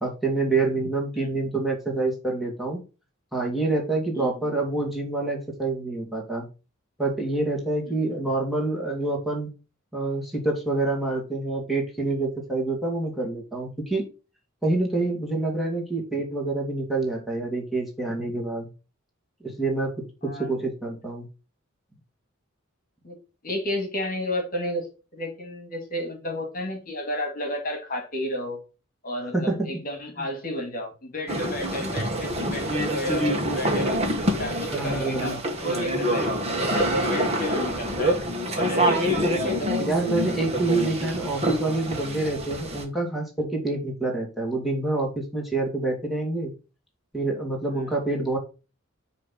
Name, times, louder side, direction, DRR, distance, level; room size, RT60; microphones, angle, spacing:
voice 1, 0.0-2.8 3.3-6.5 7.0-9.5 9.9-14.0 14.6-18.7 19.4-21.3 29.3-29.8 30.2-30.3 34.7-35.4 39.8-46.5 47.1-48.4, right 2 dB, ahead, -1 dB, 2.4 m, -27 dB
voice 2, 20.2-20.6 23.0-23.2 23.4-28.6 29.0-34.1 34.4-35.4 35.6-38.2 38.6-39.7, equal, 45° left, 3 dB, 2.0 m, -32 dB
sound 1, 31.3-42.8, equal, 30° right, 1.7 m, -26 dB
9.7 x 3.4 x 5.7 m, 0.32 s
head